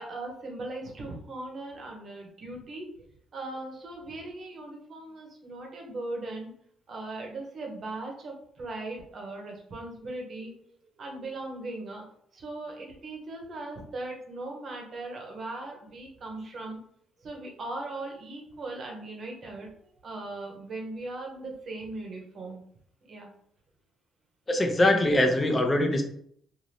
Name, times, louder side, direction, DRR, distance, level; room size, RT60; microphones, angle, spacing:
voice 1, 0.0-2.9 3.3-6.5 6.9-10.5 11.0-12.0 12.3-16.8 17.2-19.7 20.0-22.6 23.0-23.3, right 2 dB, 50° right, 1 dB, 0.8 m, -39 dB
voice 2, 24.5-26.0, left 1 dB, 25° left, 4 dB, 0.5 m, -22 dB
2.6 x 2.5 x 3.2 m, 0.64 s
cardioid pair, 90°, 0 cm